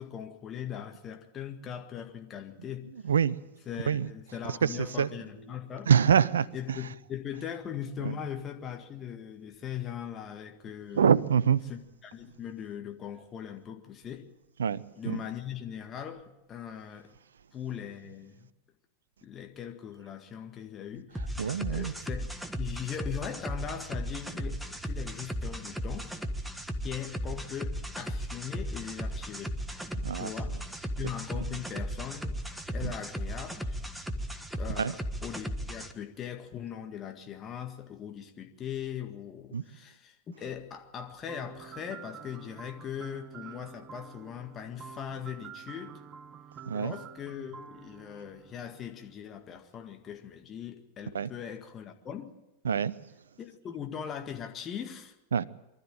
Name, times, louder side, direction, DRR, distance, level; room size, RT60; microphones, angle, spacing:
voice 1, 0.0-2.9 3.7-5.9 6.5-11.1 11.6-14.3 15.0-17.2 17.5-18.5 19.2-22.3 22.6-26.1 26.8-29.6 30.1-32.4 32.7-33.8 34.5-46.0 46.7-52.4 53.4-55.2, left 9 dB, 25° left, 1.8 m, -40 dB
voice 2, 3.0-3.4 3.9-4.1 4.4-4.7 5.0-5.1 5.9-6.8 8.0-8.1 10.9-11.6 14.6-15.2 21.4-21.9 30.0-30.3 32.8-32.9 34.8-34.9 39.5-39.6 46.7-46.9 51.1-51.3 52.6-52.9 55.3-55.4, right 7 dB, 65° right, 0.7 m, -25 dB
sound 1, 21.1-35.9, equal, 5° right, 1.5 m, -36 dB
sound 2, 41.3-49.1, right 7 dB, 25° right, 0.9 m, -48 dB
24.5 x 13.0 x 8.9 m
figure-of-eight pair, 90°, 0 cm